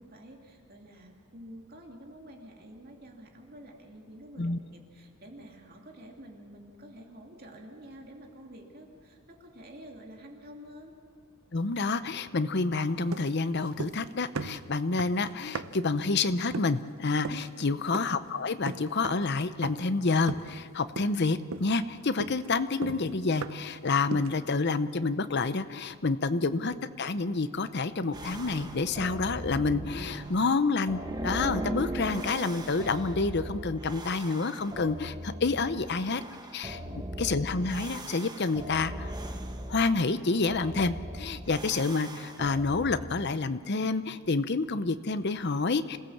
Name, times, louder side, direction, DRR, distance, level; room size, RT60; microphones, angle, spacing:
voice 1, 0.0-11.0 17.6-17.9 36.7-37.2, equal, 45° right, 1 dB, 2.5 m, -49 dB
voice 2, 11.5-36.2 36.5-36.8 37.2-39.1 39.7-46.0, left 3 dB, 50° left, 12 dB, 0.7 m, -28 dB
sound 1, 13.1-14.1 14.3-15.9 16.5-16.8 17.2-17.5 17.9-18.2 18.7-19.3 19.6-19.9 20.3-20.7 21.0-21.2 21.5-23.8 24.1-24.5, right 4 dB, 70° right, 0.7 m, -38 dB
sound 2, 28.1-43.0, right 1 dB, 20° right, 1.2 m, -39 dB
26.5 x 17.0 x 7.2 m, 2.3 s
head